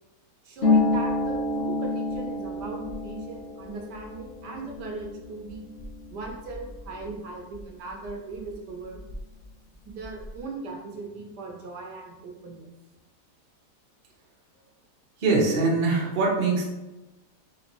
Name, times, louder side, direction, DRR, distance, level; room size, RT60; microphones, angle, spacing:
voice 1, 0.4-5.7 6.1-9.0 9.9-12.7, right 3 dB, 70° right, 1 dB, 1.2 m, -38 dB
Harp, 0.6-8.1 8.3-9.5 9.7-10.4, left 2 dB, 80° left, 0.5 m, -29 dB
voice 2, 15.2-16.6, right 3 dB, 45° right, -3 dB, 0.7 m, -22 dB
4.3 x 3.3 x 2.9 m, 1.0 s
omnidirectional pair, 2.0 m